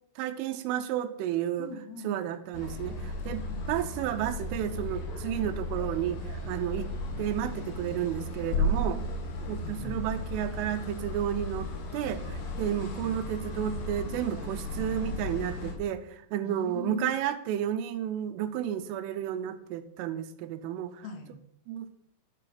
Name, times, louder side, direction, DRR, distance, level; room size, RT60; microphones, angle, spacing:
voice 1, 0.2-1.7 2.0-6.9 7.2-9.0 9.5-21.0 21.7-21.9, right 10 dB, 80° right, 11 dB, 3.1 m, -32 dB
voice 2, 1.6-2.3 3.5-3.8 8.7-10.1 16.4-17.2 21.0-21.4, left 4 dB, 90° left, 6 dB, 4.2 m, -42 dB
sound 1, 2.5-15.7, left 1 dB, 60° left, 3.7 m, -35 dB
13.0 x 6.6 x 5.7 m, 0.74 s
omnidirectional pair, 5.9 m